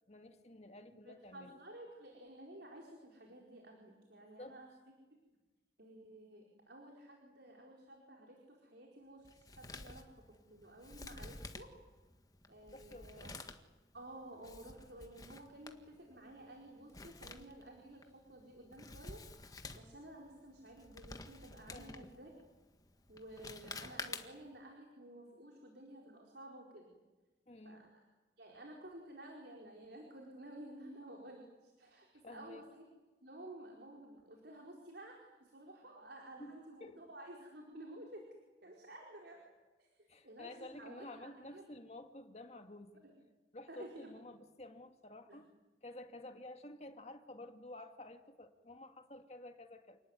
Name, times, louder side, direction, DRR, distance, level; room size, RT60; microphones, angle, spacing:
voice 1, 0.1-1.6 4.4-4.6 12.7-13.3 21.7-22.1 27.5-27.9 32.2-32.7 36.4-37.0 40.1-43.0 43.5-45.5 45.8-50.0, left 1 dB, 35° left, 7 dB, 2.0 m, -52 dB
voice 2, 0.9-4.7 5.8-11.7 12.5-13.3 13.9-19.2 19.7-22.3 23.1-26.9 27.6-27.9 28.4-32.9 33.2-38.2 38.6-39.4 39.8-41.6 43.0-43.2 43.7-44.1 45.3-45.4, right 1 dB, 65° right, 0 dB, 4.6 m, -53 dB
Male speech man speaking, 9.2-24.6, left 3 dB, 20° left, 1.6 m, -51 dB
28.5 x 19.5 x 9.6 m, 1.2 s
head